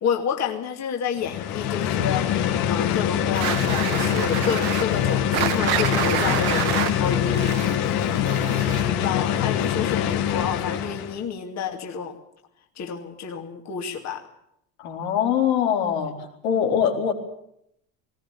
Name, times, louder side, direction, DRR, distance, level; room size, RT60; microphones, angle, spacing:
voice 1, 0.0-7.7 8.5-12.2 12.8-14.3, left 7 dB, 40° left, 2 dB, 2.6 m, -30 dB
sound 1, 1.2-11.2, left 10 dB, 60° left, 2.1 m, -24 dB
sound 2, 3.3-9.0, right 12 dB, 70° right, 1.9 m, -28 dB
voice 2, 14.8-16.1 16.4-17.1, left 8 dB, 90° left, 1 dB, 4.6 m, -22 dB
19.5 x 18.0 x 8.5 m, 0.77 s
cardioid pair, 130°, 41 cm